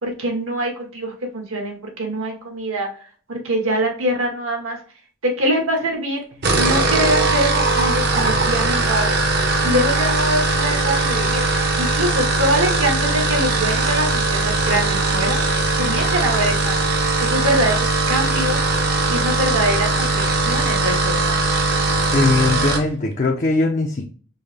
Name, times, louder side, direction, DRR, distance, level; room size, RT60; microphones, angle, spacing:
voice 1, 0.0-2.9 3.3-4.8 5.2-6.2 6.5-9.2 9.6-16.8 17.2-18.6 19.1-21.5, right 1 dB, 80° right, 2 dB, 1.3 m, -24 dB
sound 1, 6.3-22.9, right 2 dB, 50° right, 0.7 m, -20 dB
voice 2, 22.1-24.0, left 3 dB, 40° left, 1 dB, 0.5 m, -20 dB
5.3 x 2.1 x 3.3 m, 0.41 s
head